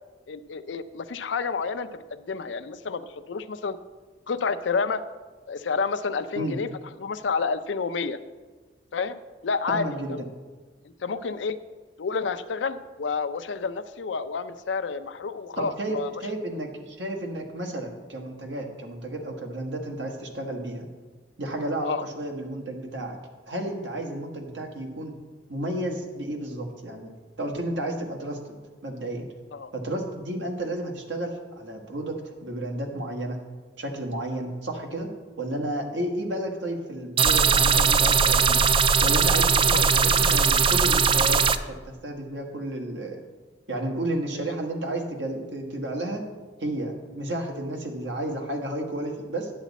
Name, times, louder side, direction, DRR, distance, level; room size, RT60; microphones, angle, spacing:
voice 1, 0.3-3.8 4.3-5.0 5.5-6.7 7.0-8.2 8.9-9.2 9.4-9.9 11.0-11.6 12.0-16.1 21.8-22.0 29.5-29.7 39.7-39.8 44.3-44.5, left 5 dB, 85° left, 12 dB, 0.5 m, -29 dB
voice 2, 9.7-10.2 15.6-20.8 21.4-23.2 23.5-25.1 25.5-27.1 27.4-28.6 28.8-29.3 29.7-33.4 33.8-35.1 35.4-38.7 39.0-43.2 43.7-46.2 46.6-49.5, right 1 dB, 80° right, 2 dB, 1.4 m, -32 dB
sound 1, 37.2-41.6, right 5 dB, 30° right, 0.3 m, -20 dB
10.5 x 8.1 x 4.1 m, 1.4 s
head